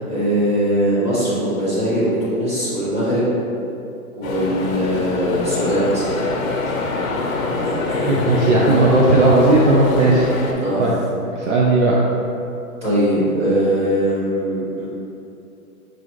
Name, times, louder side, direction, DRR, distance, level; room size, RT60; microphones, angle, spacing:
voice 1, 0.1-3.4 4.2-6.1 7.6-8.5 10.6-10.8 12.8-15.0, equal, 15° right, -10 dB, 1.3 m, -21 dB
sound 1, 4.2-10.5, left 3 dB, 65° left, 0.9 m, -24 dB
voice 2, 8.1-10.3 10.8-10.9 11.3-12.0, right 2 dB, 55° right, -3 dB, 0.6 m, -15 dB
6.1 x 2.5 x 3.0 m, 2.8 s
hypercardioid pair, 140°, 45 cm